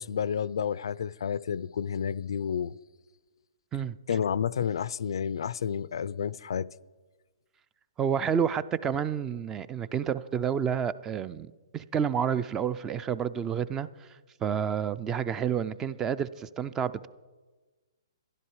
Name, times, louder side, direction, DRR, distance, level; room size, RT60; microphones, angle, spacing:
voice 1, 0.0-2.7 4.1-6.7, left 7 dB, 70° left, 0.4 m, -30 dB
voice 2, 8.0-13.9 14.4-17.1, right 8 dB, 15° right, 0.4 m, -29 dB
13.5 x 11.5 x 4.8 m
hypercardioid pair, 140°, 3 cm